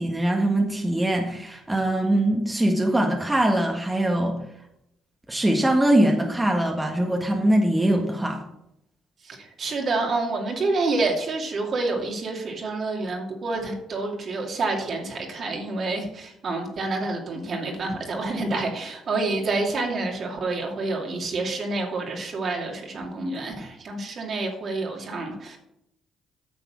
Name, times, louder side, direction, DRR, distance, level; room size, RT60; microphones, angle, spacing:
voice 1, 0.0-4.4 5.3-8.4, right 1 dB, 15° right, 1 dB, 1.6 m, -22 dB
voice 2, 9.2-25.6, right 3 dB, 50° right, 1 dB, 2.6 m, -28 dB
9.4 x 6.5 x 6.2 m, 0.81 s
supercardioid pair, 75°, 0 cm